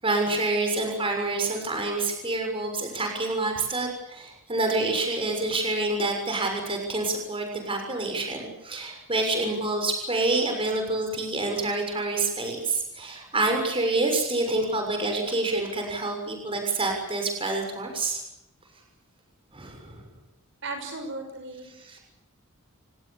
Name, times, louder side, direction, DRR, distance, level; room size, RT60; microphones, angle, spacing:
voice 1, 0.0-18.2 19.5-20.0 21.8-22.0, right 2 dB, 25° right, 3 dB, 6.5 m, -27 dB
voice 2, 20.6-21.7, right 2 dB, 60° right, 5 dB, 6.0 m, -35 dB
29.5 x 18.5 x 8.4 m, 0.85 s
head